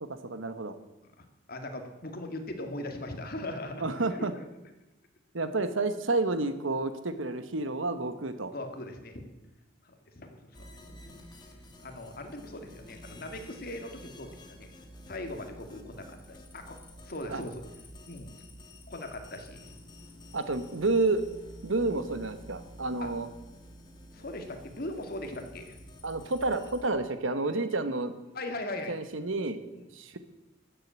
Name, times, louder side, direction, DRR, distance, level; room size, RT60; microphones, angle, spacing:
voice 1, 0.0-0.8 3.8-4.3 5.3-8.5 17.3-17.4 20.3-21.2 21.6-23.3 26.0-28.1 28.9-29.6 29.9-30.2, right 2 dB, 80° right, 11 dB, 1.2 m, -30 dB
voice 2, 1.2-3.8 4.1-4.4 8.5-9.2 9.8-10.7 11.8-14.7 15.1-16.8 17.0-17.6 18.1-18.4 18.9-19.7 23.0-23.1 24.1-25.8 28.3-28.9 29.7-29.9, left 1 dB, 50° left, 6 dB, 1.8 m, -39 dB
sound 1, 10.5-26.9, equal, 20° left, 1.8 m, -50 dB
13.0 x 7.7 x 8.7 m, 1.0 s
head